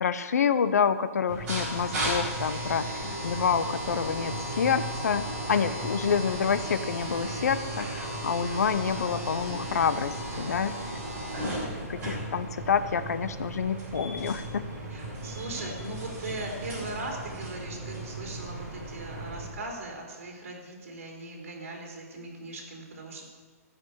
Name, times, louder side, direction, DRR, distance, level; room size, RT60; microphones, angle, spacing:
voice 1, 0.0-10.8 11.4-14.6, left 6 dB, 70° left, 13 dB, 0.8 m, -28 dB
sound 1, 1.3-19.5, right 1 dB, 15° right, 4.7 m, -35 dB
voice 2, 11.3-11.8 14.9-23.2, right 2 dB, 50° right, 1 dB, 3.6 m, -39 dB
13.5 x 6.1 x 8.6 m, 1.4 s
hypercardioid pair, 170°, 9 cm